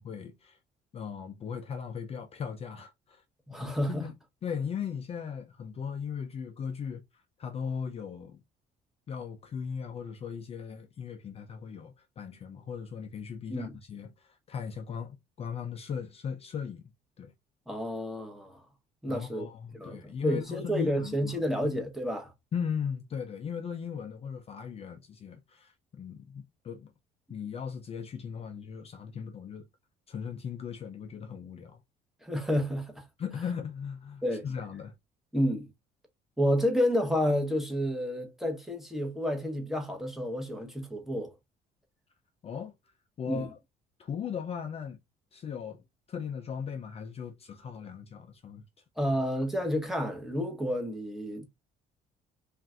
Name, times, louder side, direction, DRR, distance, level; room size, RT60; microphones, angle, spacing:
voice 1, 0.0-0.6 0.9-3.2 3.6-4.1 4.4-7.0 7.4-8.4 9.1-16.8 17.2-17.3 19.1-21.4 22.5-26.9 27.3-29.7 30.1-31.8 33.2-35.0 42.4-42.7 43.2-43.6 44.0-45.0 45.3-48.6, left 7 dB, 35° left, 0.4 m, -38 dB
voice 2, 3.5-4.1 13.5-13.7 17.7-18.6 19.0-19.5 19.8-22.3 32.2-33.0 34.2-34.5 35.3-35.7 36.4-41.3 43.3-43.5 49.0-51.5, equal, ahead, 0.9 m, -30 dB
3.2 x 2.5 x 2.3 m
cardioid pair, 110°, 17 cm